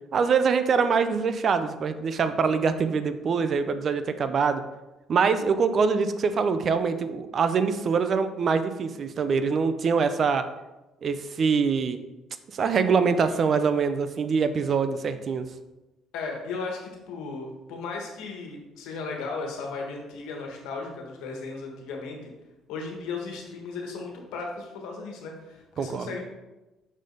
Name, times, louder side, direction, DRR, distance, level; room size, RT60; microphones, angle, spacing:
voice 1, 0.1-4.6 5.1-10.4 11.0-12.0 12.5-15.4 25.8-26.1, right 5 dB, 45° right, 10 dB, 0.5 m, -24 dB
voice 2, 16.1-22.3 22.7-26.2, left 4 dB, 90° left, 1 dB, 1.5 m, -36 dB
6.3 x 5.0 x 3.9 m, 1.0 s
cardioid pair, 110°, 0 cm